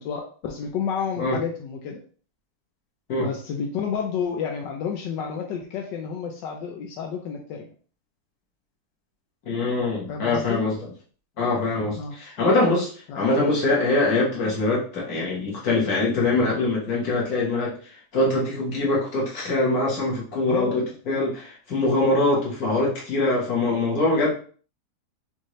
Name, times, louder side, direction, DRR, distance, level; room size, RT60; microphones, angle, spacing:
voice 1, 0.0-2.0 3.2-7.7 10.1-10.6 11.9-12.1 13.1-13.3 20.5-20.9 22.3-22.4, left 7 dB, 90° left, 2 dB, 1.3 m, -30 dB
voice 2, 9.5-10.7 11.4-17.8 18.1-24.3, left 2 dB, 60° left, -3 dB, 1.8 m, -23 dB
5.4 x 2.6 x 3.1 m, 0.41 s
omnidirectional pair, 1.9 m